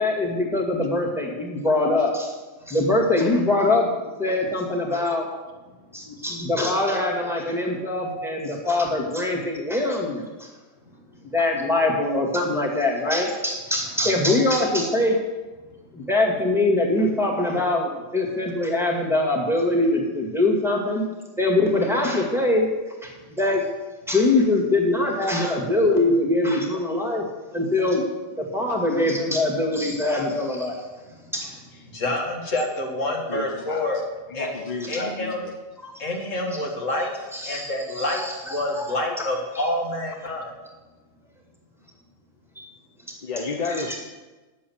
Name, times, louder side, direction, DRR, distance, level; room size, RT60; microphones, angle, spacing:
voice 1, 0.0-2.3 2.7-3.9 4.2-5.3 5.9-10.5 11.3-15.2 16.0-21.0 21.4-22.7 23.0-23.6 24.1-27.2 27.5-28.0 28.4-30.8 31.3-31.6 35.8-35.9 37.3-37.7 38.0-39.2 42.6-42.7 43.6-44.0, left 2 dB, ahead, -3 dB, 1.9 m, -23 dB
voice 2, 31.9-34.0 34.3-34.6 34.9-35.5 36.0-40.5, left 1 dB, 70° left, 1 dB, 2.0 m, -28 dB
voice 3, 33.3-33.8 34.3-35.3 43.2-44.0, left 3 dB, 40° left, 3 dB, 0.7 m, -31 dB
9.6 x 7.5 x 7.1 m, 1.2 s
omnidirectional pair, 1.4 m